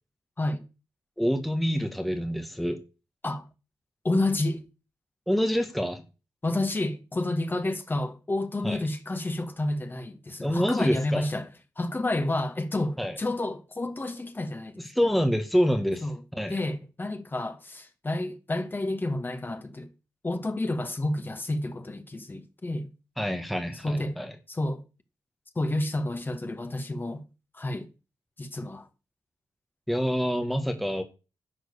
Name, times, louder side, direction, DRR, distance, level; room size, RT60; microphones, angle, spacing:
voice 1, 1.2-2.8 5.3-6.0 8.6-8.8 10.4-11.3 13.0-13.2 14.8-16.1 16.3-16.6 23.2-24.3 29.9-31.0, equal, ahead, 1.5 m, -26 dB
voice 2, 4.0-4.6 6.4-11.5 11.8-14.8 16.0-16.2 16.5-19.9 20.2-22.9 23.8-24.2 24.5-24.8 25.5-27.2 27.5-27.9 28.4-28.9, left 2 dB, 25° left, 1.8 m, -30 dB
11.5 x 4.7 x 8.4 m
cardioid pair, 75°, 8 cm